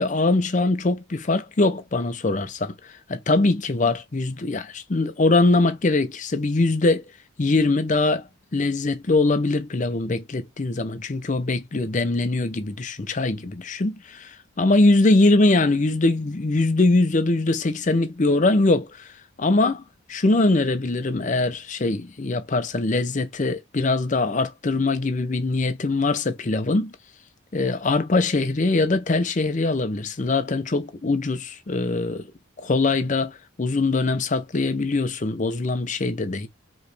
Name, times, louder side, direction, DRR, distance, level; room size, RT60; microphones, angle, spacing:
voice 1, 0.0-7.0 7.4-8.2 8.5-19.1 19.4-19.8 20.1-26.9 27.5-32.3 32.6-36.5, left 2 dB, 35° left, 0.5 m, -22 dB
4.7 x 3.1 x 3.3 m
head